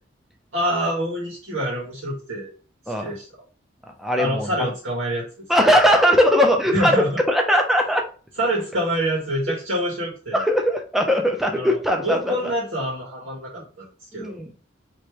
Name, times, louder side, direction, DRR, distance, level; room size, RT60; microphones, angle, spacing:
voice 1, 0.5-2.5 3.0-3.3 4.2-5.2 6.7-7.1 8.4-10.4 11.5-13.8 14.1-14.4, equal, 90° right, -5 dB, 1.7 m, -26 dB
voice 2, 4.0-4.7 5.5-8.0 10.3-12.5 13.6-13.7 14.1-14.5, equal, ahead, 2 dB, 0.5 m, -20 dB
3.1 x 3.0 x 4.6 m, 0.38 s
head